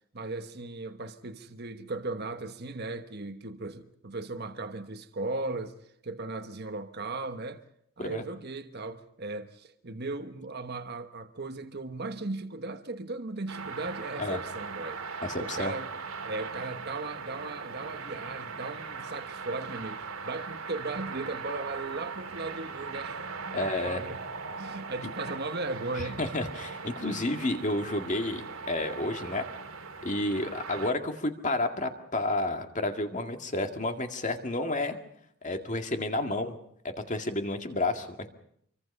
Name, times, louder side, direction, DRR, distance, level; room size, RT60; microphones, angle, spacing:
voice 1, 0.1-5.8 6.0-7.6 8.0-15.0 15.4-15.9 16.2-24.2 24.6-26.2, right 3 dB, 45° right, 1.2 m, -37 dB
sound 1, 13.5-30.9, right 5 dB, 70° right, 2.4 m, -39 dB
voice 2, 15.2-15.7 23.5-24.0 26.0-29.5 30.0-35.0 35.4-36.6 36.8-38.3, left 2 dB, 35° left, 2.0 m, -31 dB
26.5 x 24.0 x 5.5 m
head